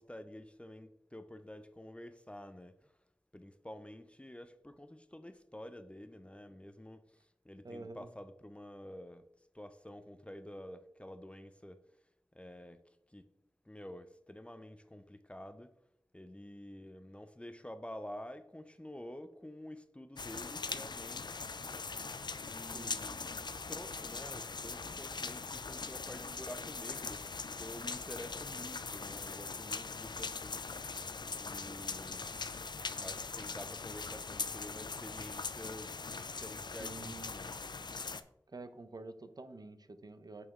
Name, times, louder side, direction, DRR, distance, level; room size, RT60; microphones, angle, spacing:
voice 1, 0.0-2.9 3.3-9.3 9.5-11.8 12.3-12.8 13.1-13.3 13.6-15.7 16.1-22.0 22.4-31.1 31.3-32.4 32.9-37.6, left 1 dB, 15° left, 0.5 m, -49 dB
voice 2, 7.6-8.1 22.7-23.0 36.8-37.3 38.5-40.5, right 3 dB, 55° right, 0.6 m, -48 dB
sound 1, 20.2-38.2, left 4 dB, 65° left, 0.4 m, -41 dB
6.3 x 6.0 x 3.6 m
wide cardioid pair, 60°, 8 cm